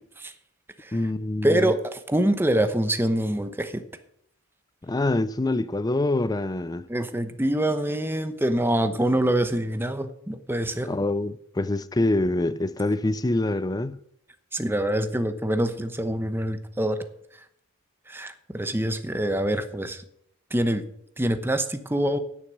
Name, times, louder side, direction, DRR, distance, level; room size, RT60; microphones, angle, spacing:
voice 1, 0.9-1.7 4.8-6.9 10.8-14.0, left 2 dB, 20° left, 0.5 m, -25 dB
voice 2, 1.4-3.8 6.9-10.9 14.5-17.0 18.1-20.0 20.5-20.8 21.2-22.2, right 1 dB, 10° right, 0.9 m, -25 dB
10.0 x 8.9 x 6.5 m
head